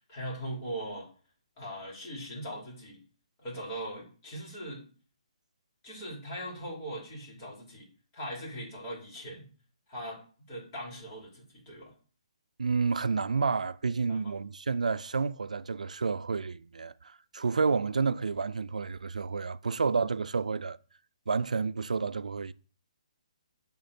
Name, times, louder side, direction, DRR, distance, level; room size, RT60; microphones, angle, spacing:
voice 1, 0.1-1.1 1.6-3.0 3.4-4.9 5.8-7.9 8.1-9.5 9.9-10.2 10.5-11.9 14.1-14.2, right 1 dB, 30° left, 3.4 m, -40 dB
voice 2, 12.6-20.8 21.3-22.5, right 4 dB, 85° right, 0.3 m, -30 dB
7.7 x 3.6 x 4.2 m
hypercardioid pair, 150°, 4 cm